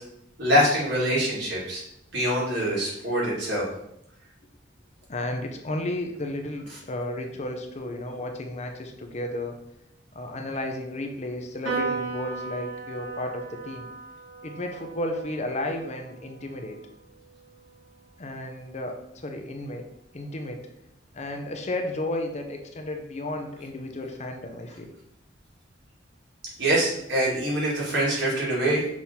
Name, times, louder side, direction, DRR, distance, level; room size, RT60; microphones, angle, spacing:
voice 1, 0.4-1.8 2.1-3.7 26.6-28.8, equal, 65° right, -5 dB, 2.5 m, -24 dB
voice 2, 5.1-9.6 10.1-13.9 14.4-16.8 18.2-19.9 20.1-20.7 21.1-24.9, left 1 dB, 35° left, 4 dB, 0.7 m, -33 dB
Piano, 11.6-18.3, right 4 dB, 80° right, 1.7 m, -37 dB
6.1 x 3.6 x 4.3 m, 0.77 s
head